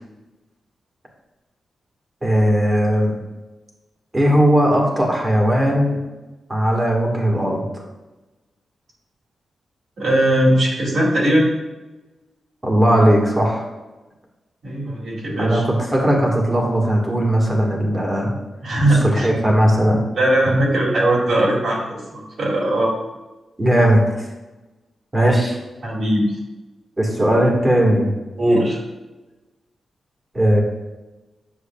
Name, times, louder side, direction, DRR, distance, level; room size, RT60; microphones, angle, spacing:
voice 1, 2.2-3.1 4.1-6.0 6.5-7.7 12.6-13.7 15.4-18.3 19.0-20.0 23.6-24.0 25.1-25.6 27.0-28.1 30.3-30.6, equal, 20° right, -1 dB, 1.5 m, -17 dB
voice 2, 10.0-11.5 14.6-15.6 18.6-19.3 20.2-22.9 25.8-26.3 28.4-28.8, right 1 dB, 65° right, -6 dB, 2.4 m, -19 dB
8.5 x 6.6 x 2.3 m, 1.1 s
wide cardioid pair, 140°, 0 cm